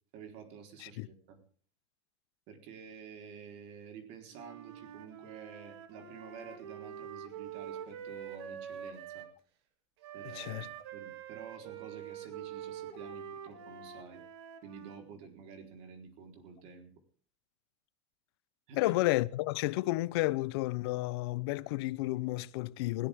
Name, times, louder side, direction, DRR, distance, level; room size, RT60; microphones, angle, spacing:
voice 1, 0.1-1.4 2.5-9.3 10.1-14.2 14.6-16.9 18.7-19.0, right 6 dB, 45° right, 4.3 m, -50 dB
Wind instrument woodwind instrument, 4.3-9.3 10.0-15.0, right 8 dB, 70° right, 2.8 m, -45 dB
voice 2, 10.3-10.7 18.8-23.1, left 19 dB, 65° left, 0.8 m, -31 dB
20.5 x 17.0 x 3.7 m
supercardioid pair, 165°, 14 cm